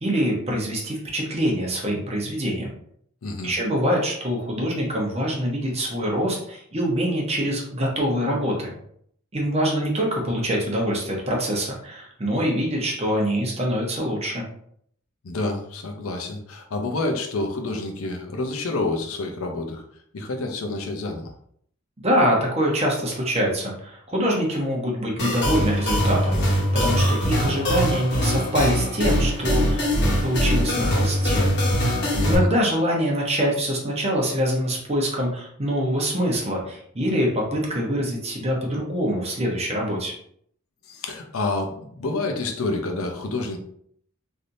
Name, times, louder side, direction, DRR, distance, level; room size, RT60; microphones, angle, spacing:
voice 1, 0.0-2.7 3.4-8.7 9.3-14.4 22.0-31.5 32.2-40.1, equal, 30° right, -1 dB, 0.8 m, -24 dB
voice 2, 3.2-3.5 15.2-19.8 20.1-21.3 32.1-32.5 40.9-43.6, left 2 dB, 75° left, 4 dB, 0.6 m, -28 dB
sound 1, 25.2-32.3, equal, 50° left, 1.0 m, -22 dB
3.3 x 2.7 x 2.6 m, 0.65 s
head